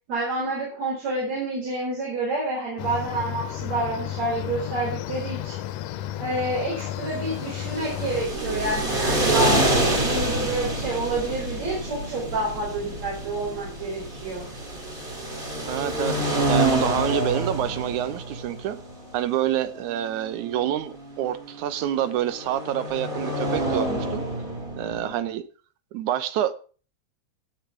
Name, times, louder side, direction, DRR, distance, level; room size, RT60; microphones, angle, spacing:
voice 1, 0.1-5.6 6.2-9.6 10.0-14.5, right 2 dB, 65° right, 5.3 m, -28 dB
sound 1, 2.8-8.3, left 13 dB, 75° left, 1.7 m, -33 dB
sound 2, 7.2-25.1, right 1 dB, 20° right, 2.2 m, -28 dB
sound 3, 7.7-19.1, equal, 40° right, 2.9 m, -37 dB
voice 2, 15.7-18.8 19.1-24.3 24.8-25.4 25.9-26.5, right 11 dB, 90° right, 2.4 m, -27 dB
17.0 x 6.5 x 4.8 m
omnidirectional pair, 3.3 m